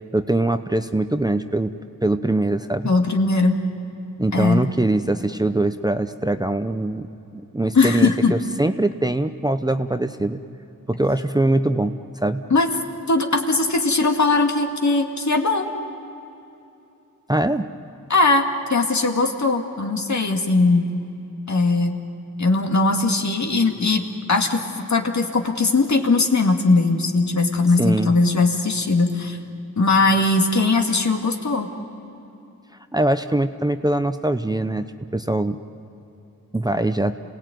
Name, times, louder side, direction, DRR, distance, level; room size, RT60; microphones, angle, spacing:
voice 1, 0.1-1.7 2.0-2.9 4.2-10.4 10.9-12.4 17.3-17.7 27.8-28.1 32.9-35.6 36.5-37.1, right 2 dB, 10° right, 8 dB, 0.7 m, -22 dB
voice 2, 2.8-3.6 4.3-4.6 7.8-8.3 12.5-12.7 13.1-15.7 18.1-20.9 21.5-22.0 22.4-24.6 24.9-29.4 29.8-31.7, left 3 dB, 55° left, 3 dB, 2.2 m, -19 dB
28.0 x 18.0 x 9.3 m, 2.8 s
wide cardioid pair, 75°, 33 cm